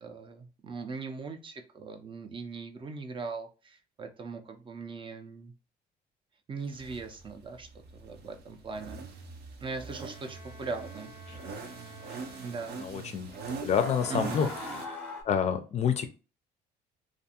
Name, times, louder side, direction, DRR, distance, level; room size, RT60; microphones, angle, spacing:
voice 1, 0.0-5.5 6.5-9.0 9.6-11.1 12.4-12.8 14.1-14.5, right 4 dB, 30° right, 5 dB, 0.4 m, -40 dB
sound 1, 6.7-14.9, right 5 dB, 70° right, 0.6 m, -43 dB
Bowed string instrument, 9.7-13.2, left 1 dB, 85° right, 1.2 m, -53 dB
sound 2, 10.3-10.4 11.3-11.6 12.1-12.2 13.3-13.4 13.8-15.2, left 2 dB, 5° left, 0.8 m, -40 dB
voice 2, 12.8-14.5 15.3-16.1, left 7 dB, 40° left, 8 dB, 0.4 m, -28 dB
2.5 x 2.3 x 2.7 m, 0.33 s
cardioid pair, 110°, 17 cm